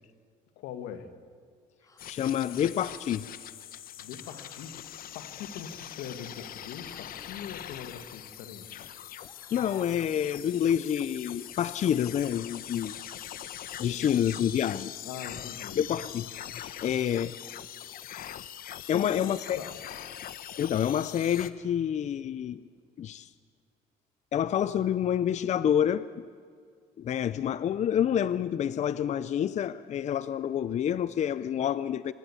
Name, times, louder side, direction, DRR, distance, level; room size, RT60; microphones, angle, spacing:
voice 1, 0.5-1.1 4.0-8.9 14.0-14.3 15.0-15.8 18.8-19.2 19.5-19.7, left 8 dB, 90° left, 9 dB, 1.8 m, -42 dB
sound 1, 1.8-2.2 4.2-4.7 6.8-7.3 9.1-10.1 11.7-11.9 14.0-14.5 15.9-16.4, left 3 dB, 20° left, 1.9 m, -55 dB
sound 2, 2.0-21.5, left 11 dB, 60° left, 0.9 m, -42 dB
voice 2, 2.1-3.3 9.5-13.0 13.8-15.0 15.8-17.3 18.9-19.6 20.6-22.6 23.0-23.3 24.3-26.2 27.0-32.1, left 9 dB, 45° left, 16 dB, 0.5 m, -28 dB
27.0 x 12.5 x 8.5 m, 2.1 s
cardioid pair, 110°, 17 cm